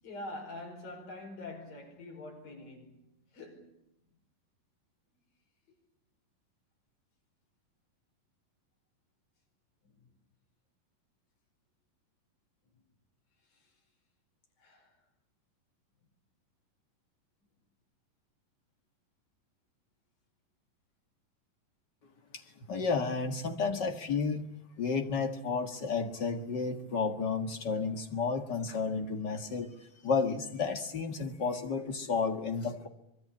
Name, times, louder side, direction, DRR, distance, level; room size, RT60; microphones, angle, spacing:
voice 1, 0.0-3.1 3.3-3.8 9.8-9.9 14.6-14.9, left 2 dB, 90° left, 7.0 m, -45 dB
voice 2, 22.7-24.4 24.8-29.7 30.0-32.9, left 4 dB, 40° left, 1.7 m, -32 dB
24.5 x 22.5 x 8.7 m
omnidirectional pair, 4.0 m